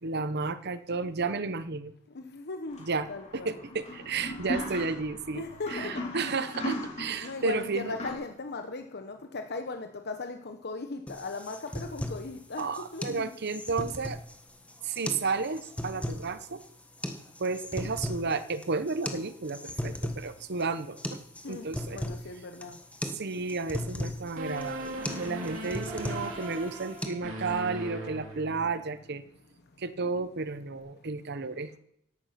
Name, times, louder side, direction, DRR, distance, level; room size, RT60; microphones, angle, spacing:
voice 1, 0.0-1.9 2.8-3.1 3.3-8.0 12.6-14.2 14.8-16.6 17.4-21.2 21.5-22.0 23.1-29.2 29.8-31.8, right 4 dB, 50° right, 13 dB, 0.9 m, -32 dB
voice 2, 2.1-2.8 3.1-3.8 5.3-5.9 6.3-6.4 7.2-12.7 12.9-13.3 13.8-13.9 21.4-22.8, left 3 dB, 50° left, 6 dB, 1.0 m, -38 dB
sound 1, 2.7-8.1, left 1 dB, 35° left, 3.5 m, -38 dB
sound 2, 11.1-27.1, left 1 dB, 5° left, 1.3 m, -38 dB
sound 3, 24.4-29.0, right 1 dB, 70° right, 2.9 m, -39 dB
13.5 x 11.5 x 5.8 m, 0.74 s
head